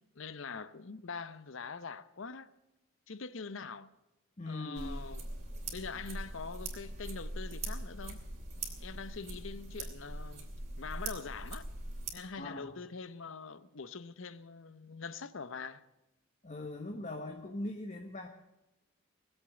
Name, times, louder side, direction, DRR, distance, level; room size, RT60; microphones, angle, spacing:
voice 1, 0.0-2.5 3.1-3.9 4.5-5.3 5.7-8.2 8.8-10.5 10.8-11.7 12.1-15.8, left 5 dB, 65° left, 0.8 m, -44 dB
voice 2, 4.4-5.0 12.4-12.7 16.4-18.3, left 2 dB, 35° left, 1.1 m, -40 dB
sound 1, 4.8-12.1, right 2 dB, 30° right, 2.9 m, -41 dB
20.5 x 8.1 x 8.8 m
head